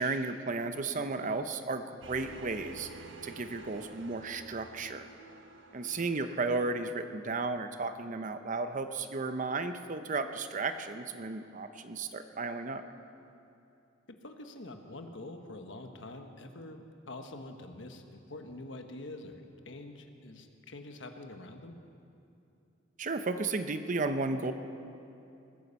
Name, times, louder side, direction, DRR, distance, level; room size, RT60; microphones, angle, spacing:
voice 1, 0.0-2.9 3.2-5.1 5.7-12.8 23.0-24.5, right 3 dB, 40° right, 9 dB, 0.7 m, -34 dB
sound 1, 2.0-7.1, right 2 dB, 75° right, 1.1 m, -50 dB
voice 2, 14.2-21.7, left 2 dB, 70° left, 5 dB, 1.2 m, -46 dB
19.5 x 9.5 x 7.0 m, 2.7 s
head